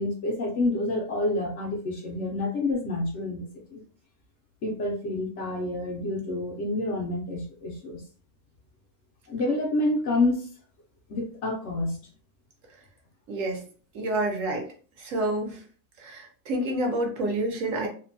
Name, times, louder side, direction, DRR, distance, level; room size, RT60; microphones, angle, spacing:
voice 1, 0.0-3.8 4.6-8.0 9.3-10.5 11.1-12.1, left 2 dB, 65° left, 0 dB, 0.8 m, -28 dB
voice 2, 13.3-13.6 13.9-14.7 15.0-15.6 16.0-17.9, right 1 dB, 65° right, 1 dB, 1.0 m, -28 dB
2.8 x 2.2 x 2.5 m, 0.41 s
omnidirectional pair, 1.5 m